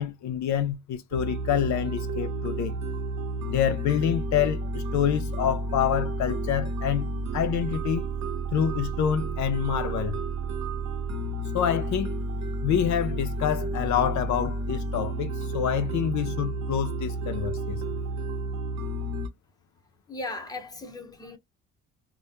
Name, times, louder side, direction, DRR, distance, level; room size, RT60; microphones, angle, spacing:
voice 1, 0.0-2.8 3.5-7.1 7.3-8.1 8.5-10.2 11.5-12.2 12.6-17.8, left 9 dB, 70° left, 0.5 m, -27 dB
sound 1, 1.1-19.3, right 2 dB, 65° right, 0.7 m, -31 dB
voice 2, 20.1-21.4, left 2 dB, 15° left, 0.7 m, -37 dB
2.1 x 2.1 x 2.8 m
cardioid pair, 90°, 30 cm